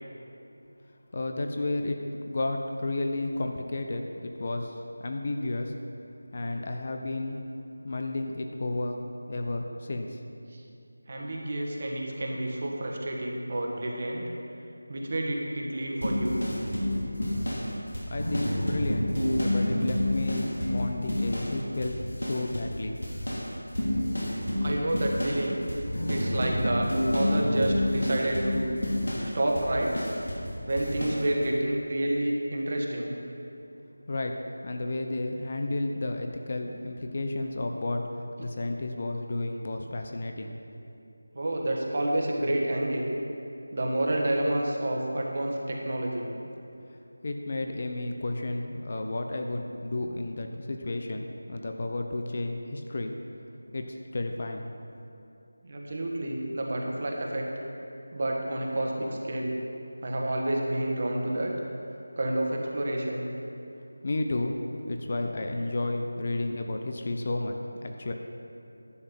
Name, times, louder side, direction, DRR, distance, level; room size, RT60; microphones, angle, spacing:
voice 1, 1.1-5.7 6.3-7.4 7.8-9.0 9.3-10.2 18.1-19.1 19.4-23.0 34.1-34.4 34.6-38.0 38.4-40.6 46.7-46.8 47.2-53.1 53.7-54.7 64.0-64.5 64.9-68.1, left 2 dB, 40° left, 4 dB, 0.8 m, -32 dB
voice 2, 11.1-14.2 14.9-16.4 24.6-25.6 26.1-28.7 29.3-30.0 30.7-33.2 41.3-43.1 43.7-46.3 55.6-57.5 58.1-59.5 60.0-61.5 62.2-63.3, right 1 dB, 40° right, 0 dB, 1.5 m, -29 dB
sound 1, 16.0-21.6 21.8-22.8 23.0-30.5 30.8-31.2, left 1 dB, 75° left, 2.8 m, -29 dB
11.0 x 7.5 x 5.5 m, 2.7 s
figure-of-eight pair, 165°, 0 cm